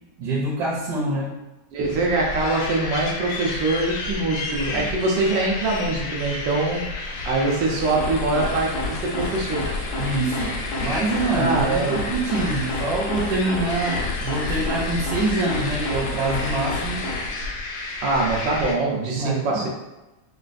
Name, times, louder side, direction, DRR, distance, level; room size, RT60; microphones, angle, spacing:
voice 1, 0.2-1.3 4.7-4.9 10.0-17.1 19.2-19.7, right 2 dB, 70° right, -4 dB, 1.2 m, -25 dB
voice 2, 1.7-9.6 11.4-12.0 18.0-19.7, right 2 dB, 90° right, -1 dB, 1.5 m, -23 dB
sound 1, 1.8-18.7, left 3 dB, 80° left, 1.3 m, -32 dB
sound 2, 7.6-17.5, left 2 dB, 60° left, 0.8 m, -30 dB
5.4 x 2.3 x 2.5 m, 1.0 s
omnidirectional pair, 1.9 m